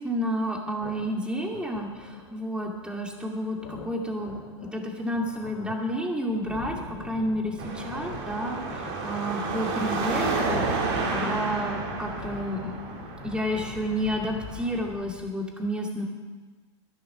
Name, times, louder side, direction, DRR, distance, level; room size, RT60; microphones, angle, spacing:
voice 1, 0.0-16.1, equal, 5° right, 1 dB, 2.2 m, -31 dB
sound 1, 0.8-15.3, left 5 dB, 55° left, 2.6 m, -45 dB
Car passing by / Traffic noise roadway noise / Engine, 7.6-14.9, right 3 dB, 55° right, 2.9 m, -31 dB
11.0 x 11.0 x 5.9 m, 1.3 s
hypercardioid pair, 110°, 15 cm